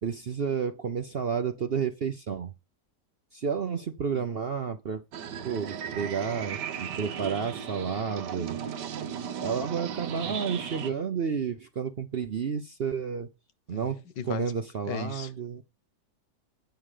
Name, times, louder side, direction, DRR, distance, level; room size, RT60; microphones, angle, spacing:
voice 1, 0.0-2.5 3.3-5.0 5.4-8.6 9.4-13.3 13.7-14.0 14.3-15.6, right 6 dB, 55° right, 0.7 m, -31 dB
sound 1, 5.1-10.9, right 8 dB, 75° right, 1.6 m, -36 dB
voice 2, 13.7-14.5 14.8-15.3, left 7 dB, 90° left, 1.7 m, -37 dB
9.4 x 5.7 x 4.9 m
omnidirectional pair, 1.8 m